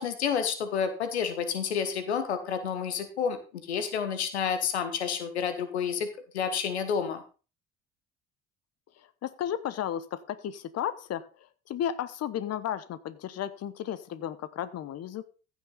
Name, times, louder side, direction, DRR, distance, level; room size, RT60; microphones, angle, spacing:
voice 1, 0.0-6.1 6.3-7.2, left 7 dB, 90° left, 10 dB, 1.2 m, -30 dB
voice 2, 9.2-11.3 11.7-15.2, left 10 dB, 50° left, 16 dB, 1.1 m, -33 dB
15.0 x 6.1 x 4.0 m, 0.35 s
hypercardioid pair, 60°, 32 cm